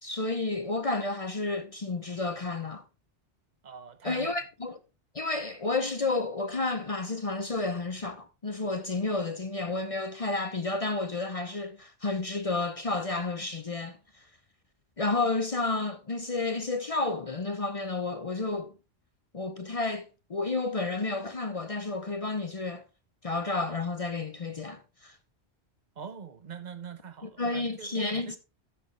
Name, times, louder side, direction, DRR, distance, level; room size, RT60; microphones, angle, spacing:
voice 1, 0.0-2.8 4.0-4.8 5.1-14.2 15.0-18.7 19.3-22.8 23.2-25.1 27.4-28.4, left 3 dB, 35° left, 0.7 m, -31 dB
voice 2, 3.6-4.3 26.0-28.4, right 6 dB, 40° right, 1.0 m, -43 dB
14.0 x 6.2 x 3.2 m
omnidirectional pair, 1.2 m